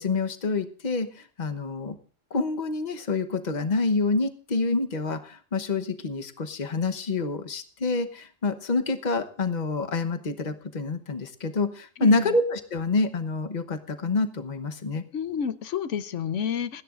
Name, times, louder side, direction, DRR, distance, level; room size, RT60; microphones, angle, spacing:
voice 1, 0.0-2.0 2.3-15.0, left 3 dB, 40° left, 7 dB, 1.1 m, -27 dB
voice 2, 12.0-12.3 15.1-16.8, left 7 dB, 75° left, 14 dB, 1.1 m, -30 dB
30.0 x 10.0 x 2.5 m, 0.43 s
omnidirectional pair, 1.3 m